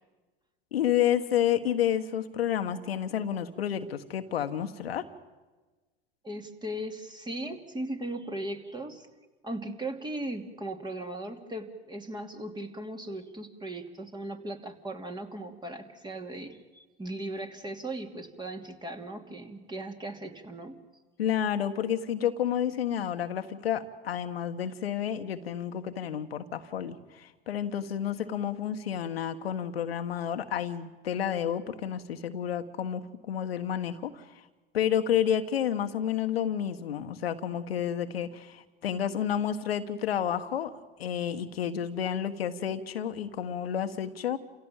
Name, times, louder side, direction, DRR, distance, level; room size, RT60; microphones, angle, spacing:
voice 1, 0.7-5.1 21.2-34.3 34.7-44.4, left 9 dB, 85° left, 8 dB, 1.4 m, -30 dB
voice 2, 6.2-9.1 9.4-20.7, right 1 dB, 15° right, 5 dB, 2.8 m, -38 dB
28.5 x 16.5 x 9.0 m, 1.2 s
hypercardioid pair, 90°, 29 cm